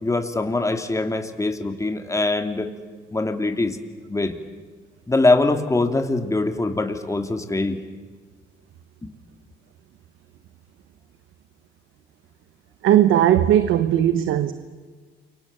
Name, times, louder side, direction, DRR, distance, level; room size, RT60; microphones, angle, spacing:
voice 1, 0.0-2.7 3.1-3.8 4.1-4.4 5.1-7.8 9.0-9.1, left 2 dB, 15° left, 2.7 m, -23 dB
voice 2, 12.8-14.5, right 11 dB, 85° right, 1.2 m, -17 dB
29.0 x 24.5 x 7.5 m
cardioid pair, 90°, 20 cm